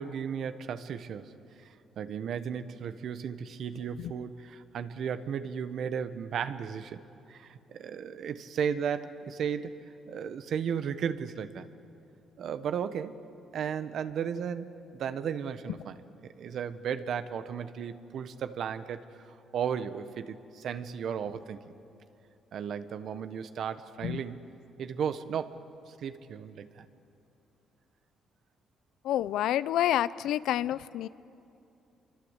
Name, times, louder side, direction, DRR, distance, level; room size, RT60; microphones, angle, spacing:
voice 1, 0.0-1.3 2.0-7.0 7.3-9.8 10.1-11.7 12.4-13.2 13.5-16.0 16.2-19.0 19.5-21.6 22.5-24.4 24.8-25.6 25.9-26.9, right 7 dB, 65° right, 10 dB, 1.3 m, -35 dB
voice 2, 29.0-31.1, left 12 dB, 85° left, 17 dB, 0.6 m, -28 dB
28.0 x 24.5 x 8.3 m, 2.7 s
cardioid pair, 90°, 0 cm